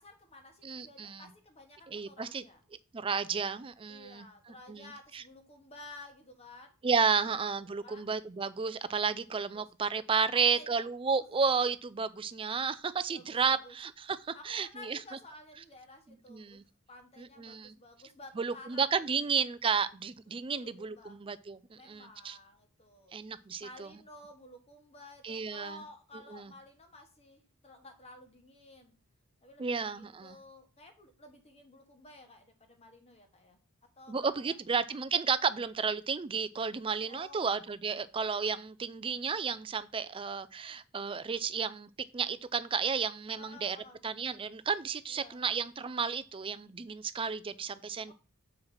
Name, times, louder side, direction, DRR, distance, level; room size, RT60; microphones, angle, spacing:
voice 1, 0.0-2.6 3.9-6.7 7.7-8.0 9.3-9.6 10.3-11.2 13.1-13.7 14.3-16.6 16.9-19.2 20.5-21.2 21.7-23.2 23.6-29.0 29.4-33.6 34.0-34.8 37.1-37.5 43.4-44.0 45.1-45.4 48.1-48.2, left 2 dB, 30° left, 1.3 m, -53 dB
voice 2, 0.6-1.3 1.9-2.4 2.9-4.3 4.7-5.2 6.8-15.0 16.1-16.6 17.2-17.8 18.4-22.4 23.1-24.0 25.2-25.8 26.3-26.5 29.6-30.4 34.1-43.8 44.0-48.1, right 5 dB, 25° right, 0.4 m, -32 dB
6.0 x 4.8 x 5.6 m
head